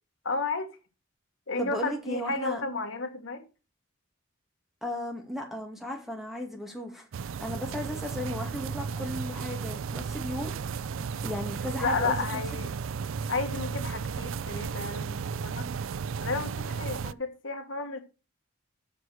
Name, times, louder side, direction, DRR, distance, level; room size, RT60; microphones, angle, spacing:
voice 1, 0.2-0.7 1.5-3.4 11.8-12.7 13.3-15.7 16.2-18.0, left 3 dB, 75° left, 1.6 m, -32 dB
voice 2, 1.6-2.6 4.8-7.1 7.4-10.5 11.0-12.3, left 1 dB, ahead, 2.4 m, -35 dB
sound 1, 7.1-17.1, right 5 dB, 85° right, 0.4 m, -34 dB
7.8 x 6.2 x 6.2 m
head